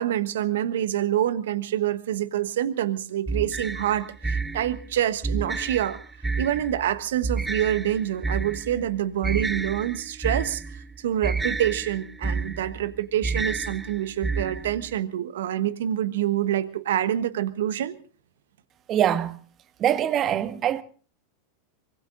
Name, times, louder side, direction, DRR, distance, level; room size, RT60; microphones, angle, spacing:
voice 1, 0.0-6.0 6.4-10.6 11.0-17.9, right 11 dB, 70° right, 1.2 m, -26 dB
sound 1, 3.3-15.0, right 4 dB, 10° right, 0.7 m, -31 dB
voice 2, 18.9-19.4 19.8-20.8, right 10 dB, 35° right, 1.2 m, -23 dB
24.5 x 23.0 x 2.6 m
figure-of-eight pair, 90°, 0 cm